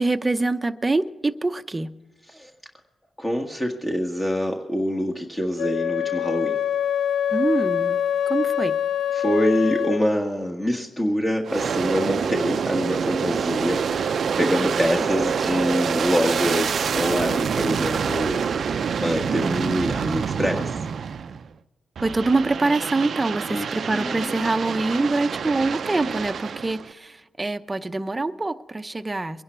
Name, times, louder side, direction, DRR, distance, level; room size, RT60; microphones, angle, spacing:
voice 1, 0.0-1.9 7.3-8.0 8.3-8.7 14.5-15.0 22.0-29.4, right 3 dB, 25° right, 10 dB, 0.7 m, -25 dB
voice 2, 3.2-6.6 9.1-20.8 23.5-24.3, equal, 20° left, 1 dB, 1.6 m, -25 dB
Wind instrument woodwind instrument, 5.6-10.1, left 9 dB, 75° left, 0.6 m, -24 dB
Aircraft, 11.4-21.5 22.0-26.9, right 6 dB, 65° right, 0.5 m, -26 dB
22.5 x 11.0 x 4.6 m, 1.2 s
cardioid pair, 65°, 0 cm